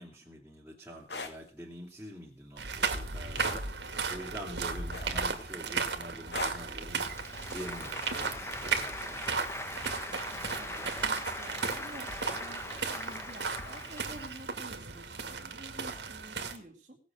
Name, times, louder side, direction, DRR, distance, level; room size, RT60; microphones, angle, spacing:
voice 1, 0.0-7.2 7.5-9.7, equal, 10° right, -6 dB, 2.9 m, -46 dB
sound 1, 1.0-1.3 3.3-3.6 4.9-5.3 6.3-6.7 8.1-8.3, left 4 dB, 75° left, 2.2 m, -38 dB
sound 2, 2.6-16.6, right 4 dB, 80° right, 2.1 m, -35 dB
Applause, 7.0-14.4, left 2 dB, 15° left, 1.2 m, -41 dB
voice 2, 10.3-17.0, right 1 dB, 45° right, -2 dB, 2.5 m, -49 dB
18.5 x 6.6 x 7.8 m, 0.38 s
head